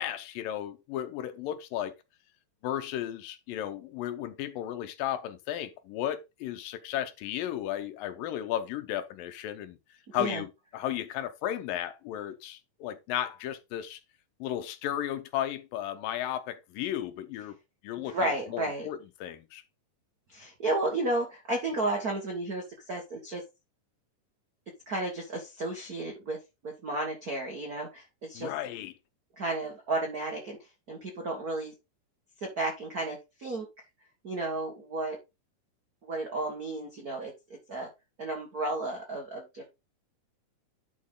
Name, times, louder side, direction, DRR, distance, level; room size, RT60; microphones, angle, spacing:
voice 1, 0.0-1.9 2.6-9.8 10.1-10.5 10.7-14.0 14.4-17.6 17.8-19.6 28.3-28.9, left 11 dB, 90° left, 2.6 m, -34 dB
voice 2, 10.1-10.4 18.0-18.9 20.3-23.4 24.9-26.4 26.6-28.5 29.4-31.7 32.4-33.7 34.2-35.2 36.0-37.3 37.7-37.9 38.2-39.6, right 2 dB, 45° right, 1.2 m, -33 dB
10.5 x 4.1 x 3.8 m
omnidirectional pair, 3.9 m